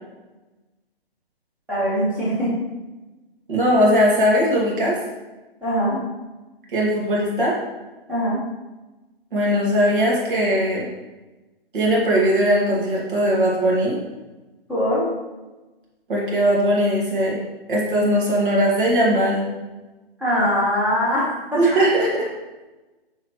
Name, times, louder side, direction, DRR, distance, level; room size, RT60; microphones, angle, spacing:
voice 1, 1.7-2.5 5.6-6.0 8.1-8.4 14.7-15.1 20.2-21.6, equal, 5° right, -10 dB, 2.3 m, -22 dB
voice 2, 3.5-5.0 6.7-7.6 9.3-10.9 11.7-13.9 16.1-17.4 17.7-19.5 21.6-22.3, equal, 60° right, -4 dB, 2.3 m, -19 dB
6.4 x 6.3 x 3.2 m, 1.1 s
figure-of-eight pair, 140°, 30 cm